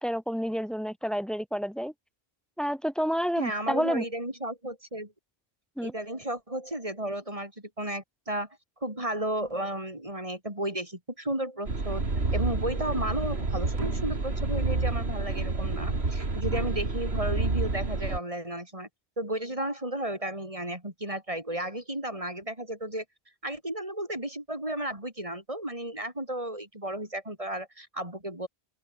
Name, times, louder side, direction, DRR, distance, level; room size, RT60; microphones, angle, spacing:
voice 1, 0.0-1.9 2.6-4.0 5.8-5.9, equal, ahead, 3.2 m, -29 dB
voice 2, 3.4-5.1 5.8-8.5 8.8-12.1 12.3-18.9 19.2-23.0 23.4-28.5, right 1 dB, 35° right, 5.8 m, -33 dB
sound 1, 11.7-18.2, right 3 dB, 85° right, 3.2 m, -29 dB
open air
omnidirectional pair, 1.0 m